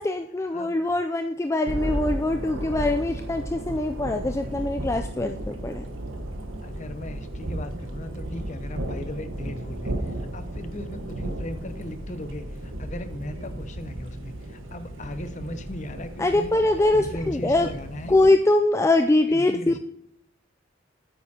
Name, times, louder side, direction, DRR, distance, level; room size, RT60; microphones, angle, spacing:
voice 1, 0.0-5.8 16.2-17.7 18.1-19.8, left 2 dB, 15° left, 6 dB, 0.3 m, -23 dB
Thunder, 1.6-18.3, right 1 dB, 85° right, 1.4 m, -34 dB
voice 2, 6.6-16.5 16.9-18.3 19.3-19.8, left 1 dB, 40° left, 10 dB, 0.7 m, -38 dB
9.6 x 8.9 x 2.8 m, 0.80 s
head